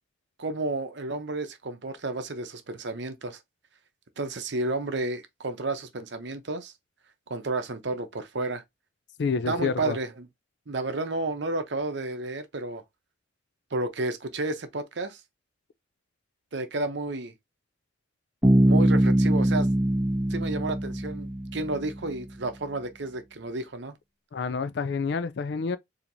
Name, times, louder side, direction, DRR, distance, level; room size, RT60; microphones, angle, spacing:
voice 1, 0.4-3.4 4.2-6.7 7.3-8.6 9.5-10.3 10.7-12.8 13.7-15.2 16.5-17.3 18.6-19.7 20.3-23.9, right 2 dB, 60° right, 0.7 m, -31 dB
voice 2, 9.2-10.0 24.3-25.8, left 5 dB, 55° left, 0.4 m, -28 dB
Bass guitar, 18.4-22.1, equal, 10° right, 1.0 m, -23 dB
4.4 x 2.8 x 2.6 m
head